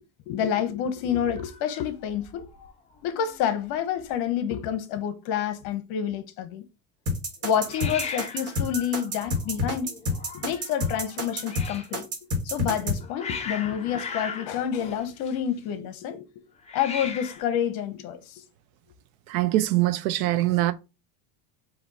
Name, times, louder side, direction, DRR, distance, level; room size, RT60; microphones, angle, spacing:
voice 1, 0.3-2.4 3.0-6.6 7.4-10.0 10.3-12.1 12.4-16.3 16.7-18.4, left 9 dB, 55° left, 0.9 m, -28 dB
Hiss, 1.4-2.7 3.0-3.4 3.7-3.8 4.0-4.7 7.6-12.0 12.7-15.7 16.6-17.5, left 5 dB, 15° left, 0.7 m, -39 dB
sound 1, 7.1-13.0, left 2 dB, 35° right, 1.7 m, -28 dB
voice 2, 19.3-20.7, right 16 dB, 80° right, 0.7 m, -23 dB
4.3 x 2.7 x 4.0 m
cardioid pair, 145°, 42 cm